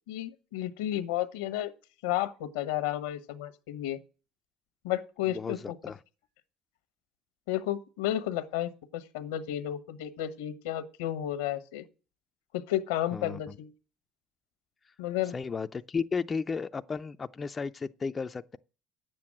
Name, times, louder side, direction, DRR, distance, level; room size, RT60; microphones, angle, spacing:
voice 1, 0.1-1.7 2.0-4.0 4.8-5.6 7.5-11.8 12.5-13.7 15.0-15.3, left 12 dB, 90° left, 1.1 m, -32 dB
voice 2, 5.3-6.0 13.1-13.4 15.3-18.6, left 5 dB, 30° left, 0.5 m, -34 dB
9.4 x 7.7 x 7.5 m
supercardioid pair, 80°, 0 cm